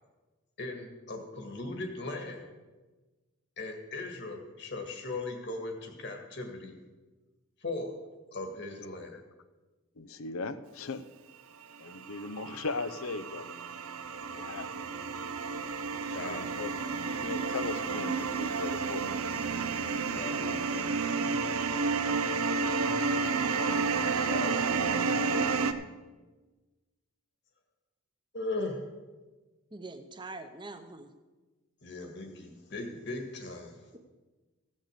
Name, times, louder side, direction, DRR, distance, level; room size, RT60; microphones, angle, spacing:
voice 1, 0.6-2.5 3.6-6.8 7.6-7.9 8.3-9.2 16.1-16.6 20.0-20.6 22.7-23.0 24.2-24.7 28.3-28.8 31.8-33.8, left 2 dB, 55° left, 4 dB, 1.9 m, -38 dB
voice 2, 10.0-11.1 11.8-13.6 14.3-14.8 16.1-16.7 17.2-20.1 20.4-21.3, left 3 dB, 80° left, 12 dB, 0.7 m, -39 dB
sound 1, 11.9-25.7, right 4 dB, 85° right, 0.7 m, -31 dB
voice 3, 29.7-31.1, right 3 dB, 20° right, 8 dB, 0.8 m, -43 dB
15.5 x 6.4 x 6.8 m, 1.2 s
head